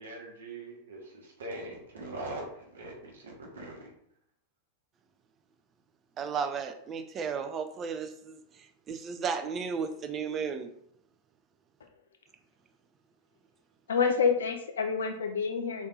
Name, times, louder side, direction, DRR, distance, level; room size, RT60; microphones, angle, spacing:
voice 1, 0.0-2.5 2.7-3.9, right 2 dB, 65° right, -1 dB, 1.0 m, -42 dB
voice 2, 6.2-10.7, right 6 dB, 25° right, 7 dB, 0.4 m, -34 dB
voice 3, 13.9-15.9, left 5 dB, 65° left, 5 dB, 0.6 m, -28 dB
3.4 x 3.0 x 4.0 m, 0.71 s
figure-of-eight pair, 90°, 0 cm